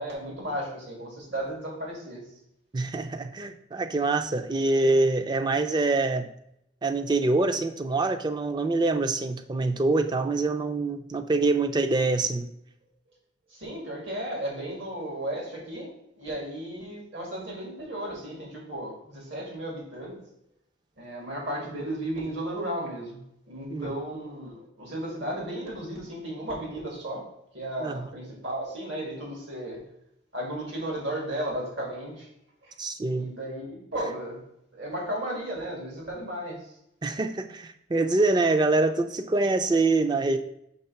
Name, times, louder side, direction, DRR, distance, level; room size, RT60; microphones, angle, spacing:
voice 1, 0.0-2.2 13.5-15.9 16.2-20.2 21.0-23.2 23.5-27.2 27.5-29.8 30.3-32.3 32.6-32.7 33.1-34.4 34.7-36.7, right 1 dB, 75° right, -2 dB, 2.3 m, -34 dB
voice 2, 2.7-6.3 6.8-12.5 23.7-23.9 27.8-28.1 32.8-33.3 37.0-40.4, right 3 dB, 25° right, 9 dB, 0.4 m, -25 dB
5.4 x 3.5 x 5.7 m, 0.77 s
head